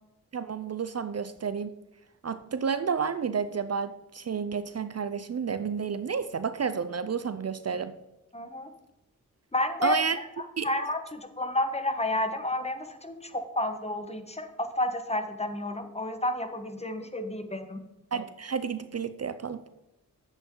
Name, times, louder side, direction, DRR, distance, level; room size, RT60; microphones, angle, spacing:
voice 1, 0.3-1.8 2.2-7.9 9.8-10.2 10.6-10.7 18.1-19.6, right 6 dB, 50° right, 12 dB, 0.6 m, -31 dB
voice 2, 8.3-8.7 9.5-14.5 14.8-17.8, left 1 dB, 20° left, 7 dB, 1.3 m, -31 dB
10.5 x 8.2 x 3.9 m, 0.94 s
cardioid pair, 50°, 33 cm